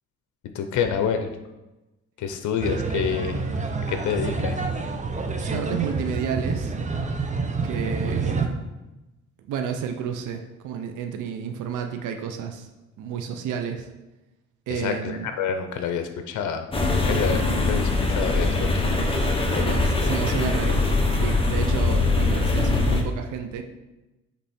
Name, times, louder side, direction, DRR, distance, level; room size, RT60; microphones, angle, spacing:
voice 1, 0.5-1.3 2.2-3.4 3.9-4.6 14.7-16.7 16.9-18.9 19.5-19.8, left 7 dB, 75° left, 7 dB, 0.7 m, -28 dB
sound 1, 2.6-8.5, right 4 dB, 25° right, 0.8 m, -28 dB
voice 2, 5.3-6.7 7.6-8.4 9.5-12.7 13.0-13.9 14.7-15.3 19.6-23.6, right 7 dB, 80° right, 5 dB, 0.7 m, -31 dB
sound 2, 16.7-23.0, left 2 dB, 20° left, 1.1 m, -22 dB
8.3 x 3.4 x 4.3 m, 1.0 s
cardioid pair, 90°, 30 cm